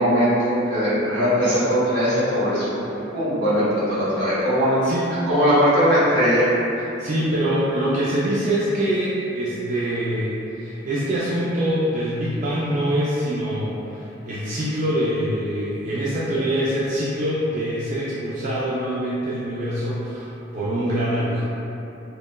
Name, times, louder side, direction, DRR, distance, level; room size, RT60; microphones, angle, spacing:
voice 1, 0.0-2.7 3.1-4.8 5.3-6.4, equal, 85° right, -13 dB, 1.5 m, -20 dB
voice 2, 7.0-21.4, right 1 dB, 45° right, -8 dB, 0.3 m, -24 dB
2.8 x 2.2 x 2.2 m, 2.9 s
head